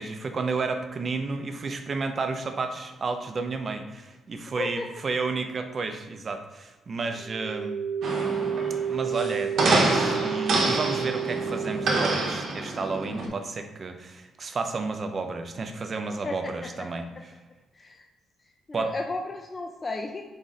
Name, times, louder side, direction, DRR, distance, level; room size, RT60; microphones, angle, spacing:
voice 1, 0.0-7.8 8.9-17.3 18.7-18.9, right 4 dB, 40° right, 6 dB, 0.5 m, -31 dB
voice 2, 4.6-4.9 16.2-16.9 17.7-18.0 18.7-20.2, left 3 dB, 30° left, 2 dB, 0.3 m, -33 dB
sound 1, 7.2-12.1, right 7 dB, 10° left, 1.0 m, -31 dB
sound 2, 8.0-13.3, right 2 dB, 65° right, 0.8 m, -26 dB
4.1 x 2.5 x 4.0 m, 1.2 s
cardioid pair, 90°, 0 cm